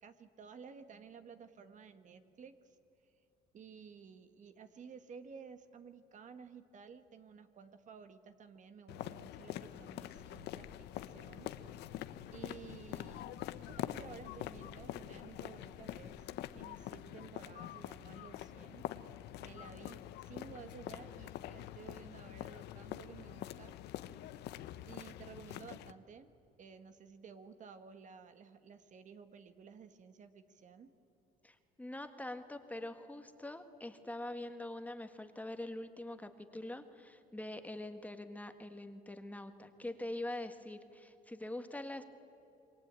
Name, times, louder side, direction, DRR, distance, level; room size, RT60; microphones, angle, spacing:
voice 1, 0.0-2.8 3.5-12.0 12.3-18.9 19.4-23.8 24.9-26.3 26.6-30.9, right 6 dB, 45° right, 9 dB, 1.6 m, -54 dB
sound 1, 8.9-25.9, left 13 dB, 80° left, 0.9 m, -45 dB
sound 2, 10.1-16.9, left 5 dB, 45° left, 1.9 m, -61 dB
voice 2, 31.4-42.0, left 1 dB, 10° left, 8 dB, 1.7 m, -44 dB
27.0 x 22.5 x 8.9 m, 2.8 s
cardioid pair, 110°, 17 cm